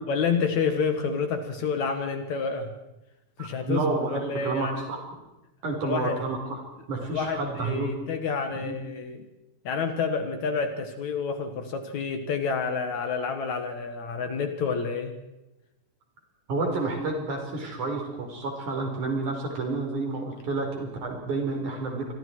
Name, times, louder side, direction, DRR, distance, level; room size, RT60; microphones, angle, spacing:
voice 1, 0.1-2.7 3.4-3.9 4.1-4.9 5.8-6.2 7.1-9.3 9.6-15.2, left 5 dB, 60° left, 7 dB, 2.9 m, -29 dB
voice 2, 3.4-5.0 5.6-6.6 6.9-7.9 8.6-8.7 16.5-22.1, right 3 dB, 60° right, 2 dB, 6.0 m, -30 dB
27.0 x 23.5 x 4.7 m, 0.97 s
omnidirectional pair, 4.0 m